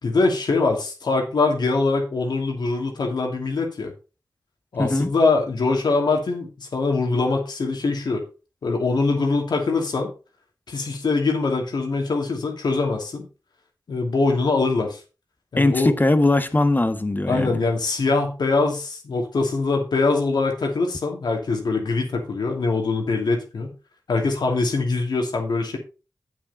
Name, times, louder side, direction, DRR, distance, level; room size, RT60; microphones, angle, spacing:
voice 1, 0.0-3.9 4.7-8.2 8.6-10.1 10.7-13.3 13.9-15.0 15.5-15.9 17.3-23.7 24.1-25.8, left 3 dB, 85° left, 2.6 m, -23 dB
voice 2, 4.8-5.1 15.6-17.6, left 2 dB, 25° left, 1.2 m, -20 dB
8.5 x 7.5 x 4.2 m
cardioid pair, 60°, 7 cm